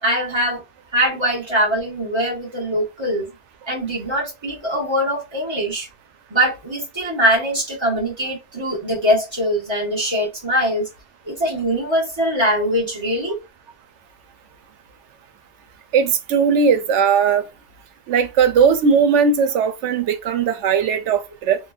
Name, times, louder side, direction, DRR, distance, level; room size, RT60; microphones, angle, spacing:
voice 1, 0.0-0.6 0.9-3.3 3.7-5.9 6.3-10.9 11.2-13.4, equal, 25° right, 1.3 m, -22 dB
voice 2, 15.9-17.4 18.1-21.6, right 6 dB, 85° right, 0.9 m, -18 dB
3.0 x 2.2 x 2.2 m
omnidirectional pair, 1.2 m